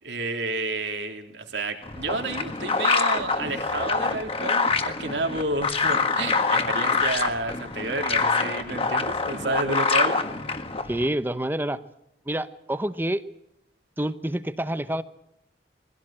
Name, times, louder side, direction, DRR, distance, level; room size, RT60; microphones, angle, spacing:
voice 1, 0.0-10.2, right 2 dB, 85° right, 4 dB, 3.3 m, -30 dB
sound 1, 1.8-11.1, left 4 dB, 30° left, 1.6 m, -25 dB
voice 2, 10.8-11.8 12.3-13.2 14.0-15.0, right 1 dB, 10° right, 12 dB, 0.8 m, -27 dB
23.0 x 16.0 x 8.8 m, 0.78 s
head